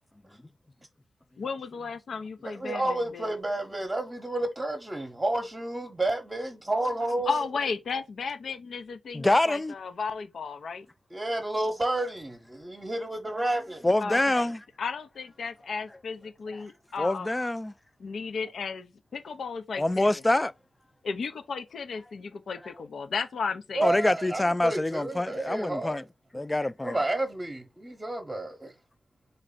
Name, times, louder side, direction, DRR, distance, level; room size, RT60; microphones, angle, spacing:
voice 1, 1.4-3.3 7.3-10.9 14.0-14.5 14.8-17.3 18.0-20.1 21.0-23.9, left 5 dB, 70° left, 0.7 m, -34 dB
voice 2, 2.4-7.4 11.1-12.3 12.6-13.9 23.7-26.0 26.3-26.5 26.8-28.7, right 1 dB, 20° right, 1.0 m, -30 dB
voice 3, 9.1-9.7 13.8-14.6 17.0-17.7 19.8-20.5 23.8-26.0 26.3-27.0, left 1 dB, 15° left, 0.3 m, -25 dB
3.9 x 3.3 x 3.9 m
cardioid pair, 80°, 0 cm